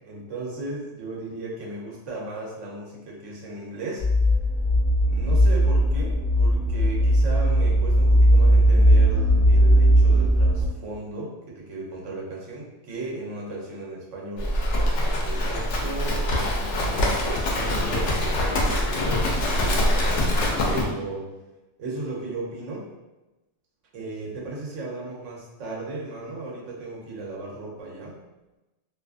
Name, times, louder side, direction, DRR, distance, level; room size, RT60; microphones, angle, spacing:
voice 1, 0.1-4.1 5.0-14.5 15.2-20.3 20.6-21.3 21.8-22.9 23.9-28.2, right 2 dB, 75° right, -3 dB, 1.0 m, -36 dB
sound 1, 4.0-10.7, equal, 25° right, 0.9 m, -18 dB
Livestock farm animals working animals, 14.4-20.8, left 1 dB, 70° left, 0.9 m, -24 dB
2.6 x 2.3 x 2.4 m, 1.0 s
omnidirectional pair, 1.3 m